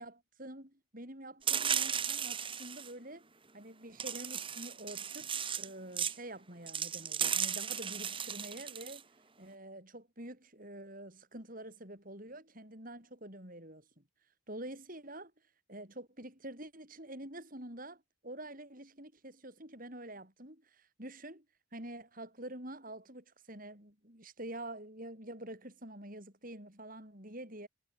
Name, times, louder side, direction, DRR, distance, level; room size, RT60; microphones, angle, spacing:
voice 1, 0.0-3.3 3.5-9.0 9.4-14.0 14.5-15.3 15.7-21.4 21.7-27.7, right 1 dB, 40° right, 7.7 m, -47 dB
sound 1, 1.5-2.9 4.0-5.7 6.0-6.2 6.7-9.0, right 8 dB, 25° right, 2.7 m, -35 dB
head